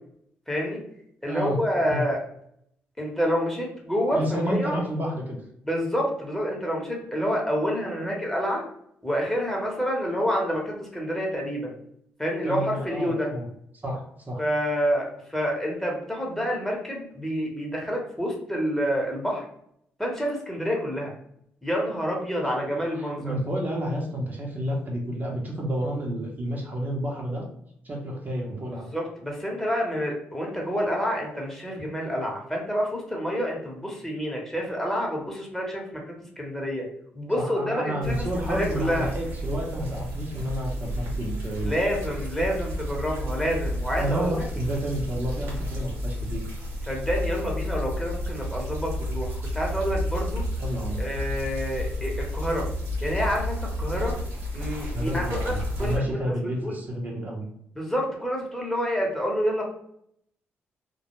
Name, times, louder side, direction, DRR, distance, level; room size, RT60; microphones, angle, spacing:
voice 1, 0.5-0.8 1.2-2.2 3.0-4.8 5.6-8.6 9.0-11.7 12.2-13.3 14.4-19.4 20.0-21.1 21.6-23.3 28.9-36.0 36.4-36.9 37.1-39.1 41.6-44.4 46.9-50.4 51.0-52.7 53.0-54.2 54.5-56.3 56.6-56.8 57.8-59.6, equal, 5° left, -1 dB, 0.9 m, -28 dB
voice 2, 1.3-1.6 1.9-2.0 4.1-5.4 12.4-13.5 13.8-14.4 22.7-27.5 27.8-28.9 37.4-41.7 44.0-46.5 50.6-51.0 54.9-57.5, equal, 40° right, -2 dB, 0.8 m, -30 dB
sound 1, 38.0-56.0, equal, 80° right, 0.8 m, -31 dB
2.2 x 2.1 x 3.0 m, 0.71 s
supercardioid pair, 55°, 5 cm